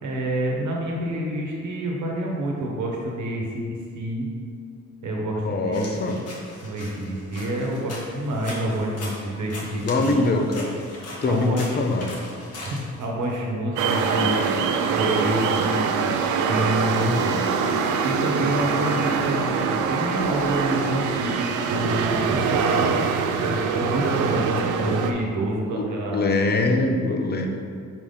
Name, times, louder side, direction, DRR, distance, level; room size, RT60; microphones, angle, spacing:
voice 1, 0.0-4.3 5.0-6.1 6.6-10.2 11.2-11.8 12.4-14.5 14.9-15.9 16.4-17.3 18.0-22.9 23.4-26.2, right 1 dB, 75° right, -1 dB, 1.3 m, -28 dB
voice 2, 5.4-6.2 9.7-10.7 11.2-12.1 16.9-17.5 25.7-25.8 26.1-27.5, left 2 dB, 35° left, 3 dB, 0.7 m, -23 dB
sound 1, 5.7-13.4, left 1 dB, 55° left, 1.4 m, -40 dB
sound 2, 13.8-25.1, right 5 dB, 90° right, 0.5 m, -24 dB
5.0 x 3.5 x 5.5 m, 2.3 s
cardioid pair, 90°, 30 cm